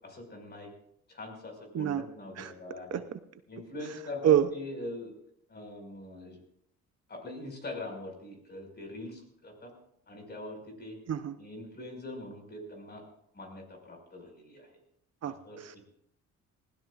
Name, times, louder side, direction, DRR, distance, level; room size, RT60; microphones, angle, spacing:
voice 1, 0.0-0.7 1.1-3.0 3.5-5.1 5.5-6.4 7.1-9.7 10.1-11.0 11.4-13.0 13.3-14.7 15.2-15.6, left 2 dB, 35° left, 3 dB, 5.5 m, -42 dB
voice 2, 15.2-15.8, right 10 dB, 55° right, 11 dB, 0.8 m, -27 dB
20.5 x 16.0 x 2.5 m, 0.71 s
cardioid pair, 90°, 30 cm